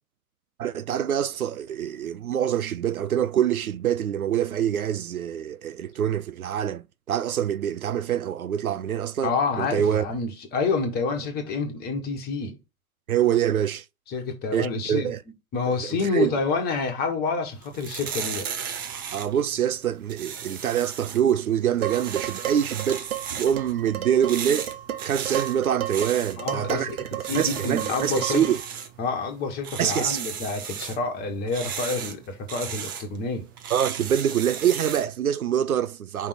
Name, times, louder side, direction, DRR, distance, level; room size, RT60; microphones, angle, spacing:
voice 1, 0.6-10.1 13.1-13.8 14.5-15.2 15.9-16.3 19.1-24.7 25.0-28.6 29.8-30.2 33.7-36.3, right 9 dB, 75° right, 0.6 m, -25 dB
voice 2, 9.2-12.6 14.1-15.1 15.5-18.5 26.4-27.0 27.2-28.4 29.0-33.4, left 4 dB, 20° left, 1.5 m, -28 dB
sound 1, 17.5-35.2, right 7 dB, 15° right, 0.4 m, -36 dB
Dishes pots and pans, 21.8-28.7, right 12 dB, 45° right, 1.0 m, -33 dB
5.4 x 3.7 x 5.0 m
figure-of-eight pair, 110°, 43 cm